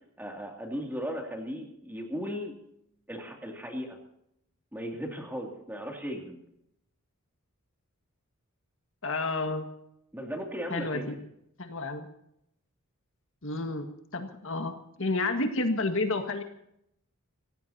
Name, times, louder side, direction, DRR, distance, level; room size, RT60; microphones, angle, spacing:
voice 1, 0.2-2.5 3.1-4.0 4.7-6.4 10.1-11.0, equal, 10° right, 1 dB, 2.6 m, -36 dB
voice 2, 9.0-9.7 10.7-11.2 11.6-12.1 13.4-13.9 14.1-16.4, left 2 dB, 60° left, 5 dB, 1.8 m, -30 dB
25.5 x 16.5 x 2.8 m, 0.76 s
head